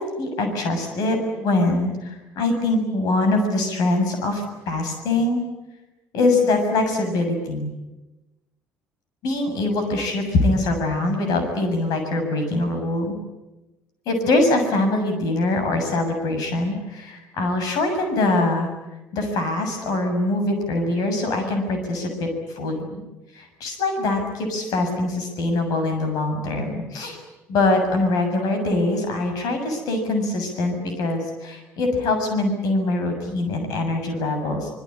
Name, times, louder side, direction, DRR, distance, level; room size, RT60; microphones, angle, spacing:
voice 1, 0.0-5.4 6.1-7.7 9.2-13.1 14.1-18.7 19.1-22.9 23.3-27.2 27.5-34.7, left 2 dB, 60° left, 6 dB, 7.0 m, -23 dB
25.5 x 22.5 x 9.9 m, 1.0 s
figure-of-eight pair, 55°, 7 cm